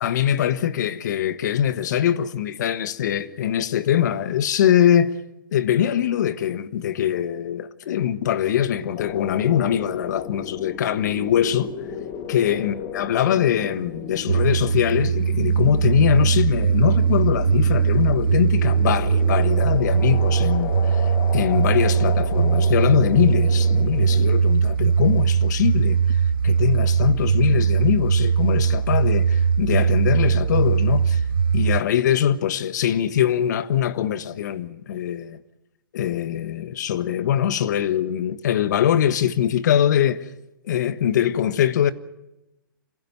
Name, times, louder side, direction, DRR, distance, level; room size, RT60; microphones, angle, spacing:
voice 1, 0.0-5.1 5.5-11.7 12.3-26.2 26.4-31.2 31.5-35.4 35.9-40.3 40.6-41.9, left 10 dB, 55° left, 1.4 m, -22 dB
sound 1, 9.0-24.3, left 7 dB, 30° left, 2.3 m, -35 dB
sound 2, 14.3-31.8, right 6 dB, 80° right, 0.7 m, -20 dB
27.0 x 16.0 x 7.9 m
hypercardioid pair, 130°, 11 cm